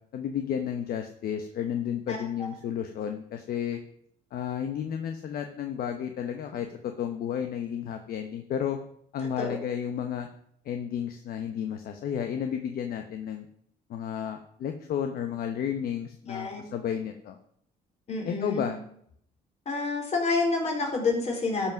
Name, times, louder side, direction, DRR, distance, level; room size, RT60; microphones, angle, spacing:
voice 1, 0.1-3.8 4.3-8.8 9.1-10.3 10.6-13.5 13.9-17.4 18.2-18.8, left 8 dB, 60° left, 6 dB, 1.0 m, -32 dB
voice 2, 2.1-2.5 9.4-9.6 16.3-16.6 18.1-18.7 19.7-21.7, left 3 dB, 40° left, 0 dB, 4.1 m, -29 dB
12.5 x 5.9 x 6.0 m, 0.67 s
cardioid pair, 110°, 17 cm